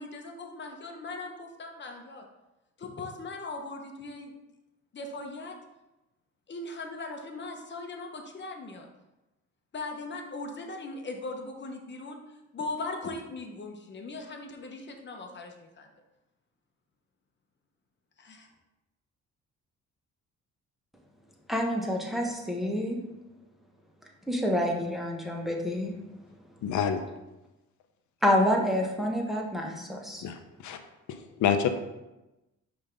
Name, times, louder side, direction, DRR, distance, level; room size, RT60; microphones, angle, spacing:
voice 1, 0.0-2.3 2.8-4.3 4.9-5.6 6.5-8.9 9.7-15.9 18.2-18.5, left 3 dB, 35° left, 3 dB, 1.1 m, -39 dB
voice 2, 21.5-23.0 24.3-25.9 28.2-30.2, left 1 dB, ahead, 0 dB, 1.1 m, -28 dB
voice 3, 26.6-27.0 30.2-30.8 31.1-31.7, left 8 dB, 75° left, 7 dB, 0.7 m, -28 dB
5.2 x 3.5 x 5.3 m, 0.99 s
cardioid pair, 90°, 30 cm